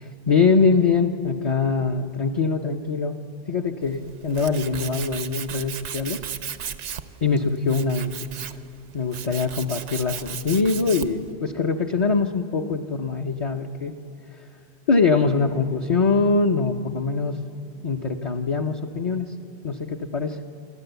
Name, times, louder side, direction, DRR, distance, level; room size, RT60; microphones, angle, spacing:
voice 1, 0.3-3.2 3.5-6.2 7.2-8.1 8.9-13.9 14.9-17.4 17.8-19.3 19.6-20.4, left 4 dB, 35° left, 1 dB, 0.7 m, -23 dB
Tools, 3.8-11.3, right 8 dB, 85° right, 1.0 m, -36 dB
29.0 x 13.0 x 8.0 m, 2.8 s
omnidirectional pair, 1.2 m